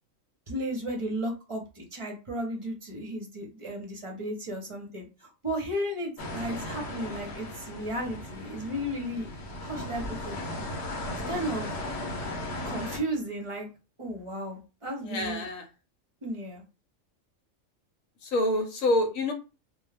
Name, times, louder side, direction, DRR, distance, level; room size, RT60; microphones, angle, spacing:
voice 1, 0.5-9.3 9.6-10.4 11.3-11.8 12.6-13.7 14.0-15.5 16.2-16.6, equal, 30° right, 0 dB, 0.6 m, -34 dB
sound 1, 6.2-13.0, left 1 dB, 60° left, 1.0 m, -36 dB
voice 2, 15.0-15.6 18.2-19.3, left 1 dB, 90° left, 3 dB, 1.1 m, -27 dB
2.3 x 2.3 x 3.3 m, 0.30 s
omnidirectional pair, 1.4 m